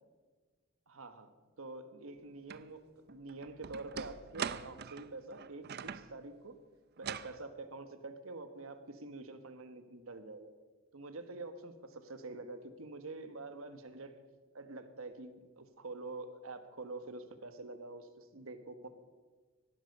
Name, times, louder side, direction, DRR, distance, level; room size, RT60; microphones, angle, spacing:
voice 1, 0.9-1.3 1.6-6.5 7.0-10.5 10.9-14.1 14.5-18.9, right 2 dB, 75° right, 9 dB, 1.3 m, -46 dB
sound 1, 2.5-2.6 3.1-6.1 7.0-7.4, right 7 dB, 45° right, 0.5 m, -42 dB
17.5 x 11.5 x 5.4 m, 1.4 s
head